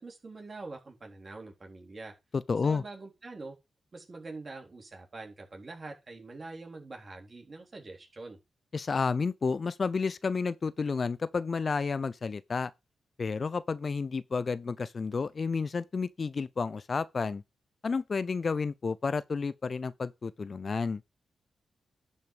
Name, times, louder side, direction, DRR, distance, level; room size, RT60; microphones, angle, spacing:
voice 1, 0.0-2.1 2.6-3.6 3.9-8.4, right 3 dB, 45° right, 3.9 m, -44 dB
voice 2, 2.3-2.8 8.7-12.7 13.2-17.4 17.8-21.0, left 4 dB, 50° left, 0.6 m, -31 dB
11.0 x 5.3 x 5.1 m
supercardioid pair, 40°, 0 cm